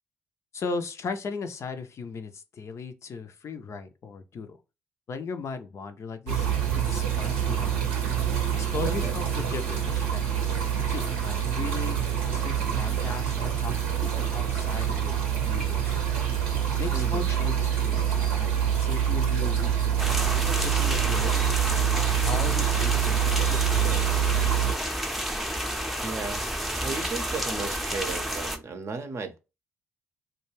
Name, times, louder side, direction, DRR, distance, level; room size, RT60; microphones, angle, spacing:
voice 1, 0.5-4.6 5.1-6.5 6.7-7.9 8.5-10.4 10.9-12.0 12.3-15.2 15.5-16.3 16.8-18.5 18.8-21.6 22.2-25.2, left 5 dB, 45° left, 0.5 m, -37 dB
sound 1, 6.3-24.7, right 9 dB, 80° right, 0.7 m, -26 dB
voice 2, 16.9-17.2 26.0-26.5 26.8-29.4, right 4 dB, 45° right, 0.6 m, -35 dB
sound 2, 20.0-28.6, equal, ahead, 0.6 m, -30 dB
2.2 x 2.2 x 3.1 m
hypercardioid pair, 45°, 7 cm